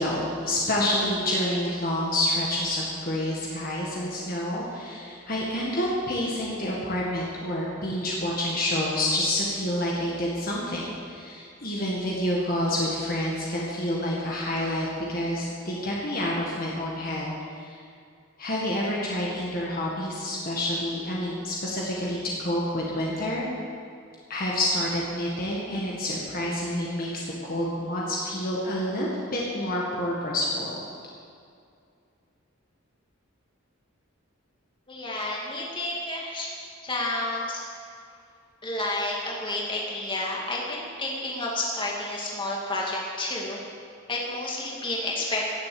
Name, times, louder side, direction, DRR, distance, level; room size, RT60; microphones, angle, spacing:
voice 1, 0.0-17.8 18.4-23.5 24.3-27.2 27.5-30.8, left 1 dB, 45° left, -4 dB, 1.8 m, -28 dB
voice 2, 34.9-36.5 36.8-37.6 38.6-43.6 44.1-45.4, left 2 dB, 25° left, -3 dB, 2.3 m, -30 dB
16.5 x 7.9 x 7.8 m, 2.4 s
head